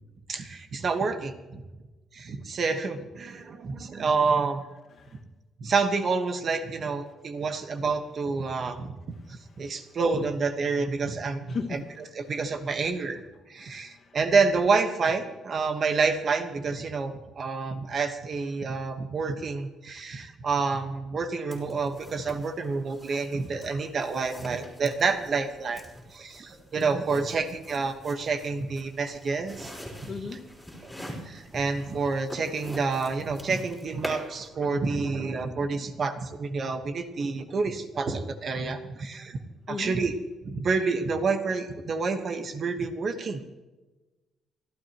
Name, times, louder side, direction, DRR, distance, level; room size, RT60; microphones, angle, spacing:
voice 1, 0.3-1.6 2.1-4.6 5.6-9.0 9.3-11.6 12.1-13.2 13.5-25.8 26.1-29.7 30.0-30.1 31.2-39.4 39.7-40.1 40.4-43.4, right 4 dB, 40° right, 7 dB, 1.3 m, -28 dB
voice 2, 9.2-10.0 11.5-11.9 13.6-14.2 30.0-30.4 39.7-40.0, left 5 dB, 45° left, 3 dB, 1.7 m, -38 dB
sound 1, 21.5-34.5, equal, ahead, 3.7 m, -45 dB
28.0 x 12.0 x 3.0 m, 1.2 s
cardioid pair, 160°, 0 cm